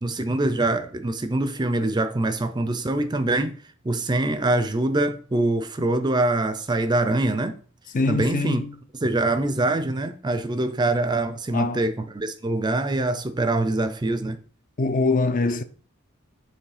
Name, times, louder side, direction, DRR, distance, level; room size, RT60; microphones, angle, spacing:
voice 1, 0.0-3.6 3.8-7.6 8.1-8.6 9.0-14.4, right 2 dB, 20° right, 0.5 m, -24 dB
voice 2, 7.9-8.8 11.5-11.8 14.8-15.6, left 3 dB, 40° left, 0.5 m, -23 dB
7.1 x 3.1 x 4.9 m
head